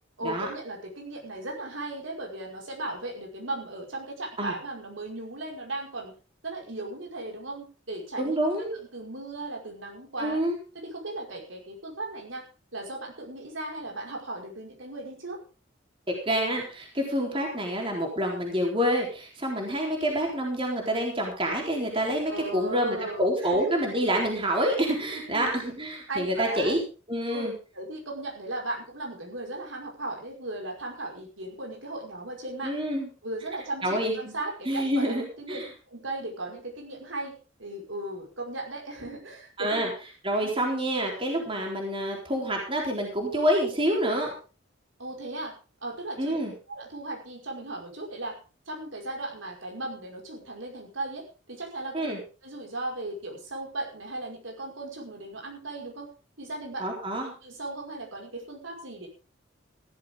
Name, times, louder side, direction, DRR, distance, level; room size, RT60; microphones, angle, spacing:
voice 1, 0.2-6.1 6.4-8.4 8.7-10.4 10.7-12.5 12.7-15.4 22.3-23.7 25.0-25.6 26.1-26.7 27.3-27.5 27.7-32.7 33.2-39.9 40.4-40.5 45.0-45.5 45.8-46.4 46.7-48.4 48.7-52.1 52.4-56.1 56.4-56.8 57.4-59.1, right 2 dB, 75° right, 0 dB, 5.4 m, -37 dB
voice 2, 8.2-8.7 10.2-10.6 16.1-26.8 27.1-27.5 32.6-33.1 33.8-34.3 34.7-35.6 39.6-39.9 40.2-44.3 46.2-46.5 51.9-52.2 56.8-57.3, equal, 25° right, 0 dB, 3.9 m, -27 dB
15.5 x 14.0 x 3.8 m, 0.35 s
head